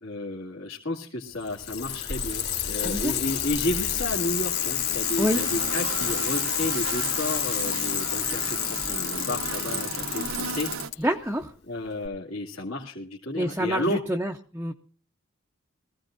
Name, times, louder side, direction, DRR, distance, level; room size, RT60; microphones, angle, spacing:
voice 1, 0.0-11.1 11.7-14.0, left 1 dB, 75° left, -5 dB, 2.2 m, -32 dB
Bicycle, 1.3-10.9 12.0-12.1, left 11 dB, 50° left, 2.2 m, -29 dB
sound 1, 1.8-10.9, right 5 dB, 75° right, 0.9 m, -35 dB
voice 2, 11.0-11.5 13.4-14.7, equal, 10° right, 1 dB, 0.6 m, -27 dB
23.0 x 15.5 x 2.5 m, 0.43 s
head